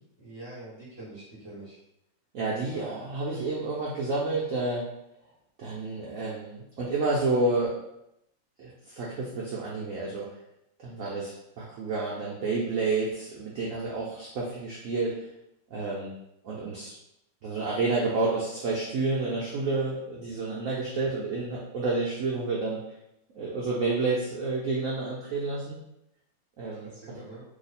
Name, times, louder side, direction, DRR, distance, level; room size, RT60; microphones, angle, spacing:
voice 1, 0.2-1.8 2.7-2.9 3.3-3.4 26.9-27.4, right 1 dB, 20° left, -8 dB, 1.0 m, -44 dB
voice 2, 2.3-4.8 5.6-7.8 8.6-10.3 10.8-15.3 15.7-16.1 16.4-16.9 17.4-22.8 23.3-25.8 26.6-27.2, right 3 dB, 70° right, -5 dB, 0.7 m, -30 dB
3.1 x 2.1 x 4.1 m, 0.82 s
omnidirectional pair, 2.1 m